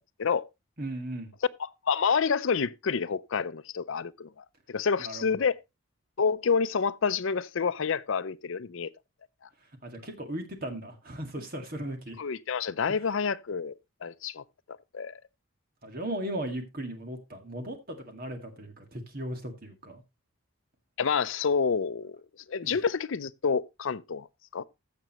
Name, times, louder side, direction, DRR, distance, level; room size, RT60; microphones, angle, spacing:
voice 1, 0.8-1.3 5.0-5.5 9.8-12.2 12.9-13.0 15.8-20.0 22.6-22.8, right 1 dB, 40° right, 1.9 m, -37 dB
voice 2, 1.6-5.5 6.2-8.9 12.2-13.7 14.0-14.4 14.9-15.2 21.0-22.2 22.5-24.3 24.5-24.7, left 5 dB, 65° left, 0.5 m, -28 dB
15.0 x 6.7 x 2.9 m
head